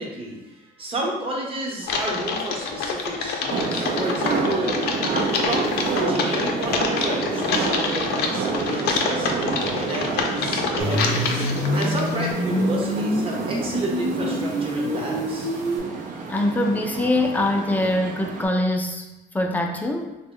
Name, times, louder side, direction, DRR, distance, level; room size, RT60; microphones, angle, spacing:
voice 1, 0.0-4.8 5.5-11.5 11.7-15.5, right 1 dB, 35° right, -2 dB, 0.9 m, -31 dB
Typing, 1.8-12.3, left 4 dB, 75° left, 0.5 m, -27 dB
sound 1, 3.5-18.4, right 4 dB, 50° right, 0.5 m, -29 dB
sound 2, 10.8-15.8, left 1 dB, 85° right, 0.9 m, -26 dB
voice 2, 16.3-19.1 19.3-20.2, left 1 dB, 10° left, 2 dB, 0.4 m, -23 dB
3.3 x 2.1 x 3.6 m, 1.0 s
cardioid pair, 110°, 17 cm